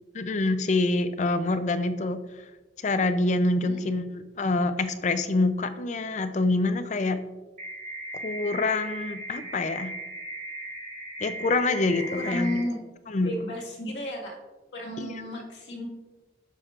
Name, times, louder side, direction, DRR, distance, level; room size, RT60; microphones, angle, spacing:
voice 1, 0.1-2.2 2.8-7.2 8.2-9.9 11.2-12.6 13.1-13.5 15.0-15.2, left 2 dB, 40° left, 10 dB, 0.5 m, -26 dB
sound 1, 7.6-12.6, right 1 dB, 45° right, 2.4 m, -37 dB
voice 2, 12.1-12.8 13.2-14.3 14.7-15.9, left 1 dB, 80° left, -2 dB, 1.8 m, -33 dB
10.0 x 6.5 x 2.5 m, 1.2 s
head